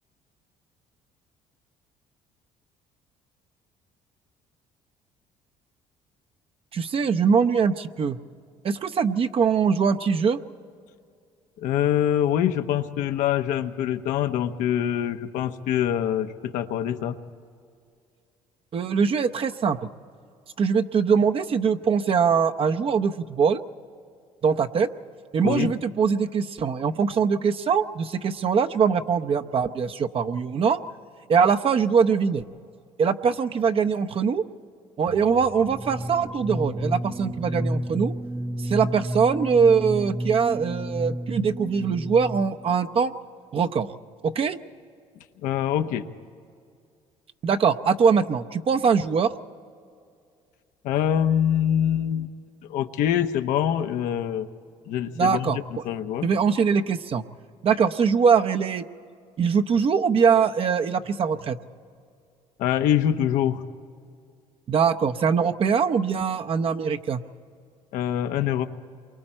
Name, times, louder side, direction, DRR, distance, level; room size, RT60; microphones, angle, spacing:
voice 1, 6.7-8.2 8.6-10.4 18.7-19.9 20.6-23.6 24.4-24.9 25.3-30.8 31.3-32.4 33.0-34.4 35.0-38.1 38.6-43.1 43.5-43.9 44.2-44.6 47.4-49.3 55.1-55.6 56.2-57.2 57.6-58.8 59.4-61.6 64.7-67.2, right 6 dB, 45° right, 8 dB, 0.8 m, -22 dB
voice 2, 11.6-17.2 25.4-25.7 45.4-46.1 50.8-52.3 52.7-54.5 54.9-56.3 62.6-63.6 67.9-68.6, left 10 dB, 75° left, 8 dB, 0.9 m, -24 dB
sound 1, 35.1-42.7, equal, 15° right, 0.7 m, -31 dB
28.0 x 23.5 x 4.4 m, 2.3 s
supercardioid pair, 90°, 13 cm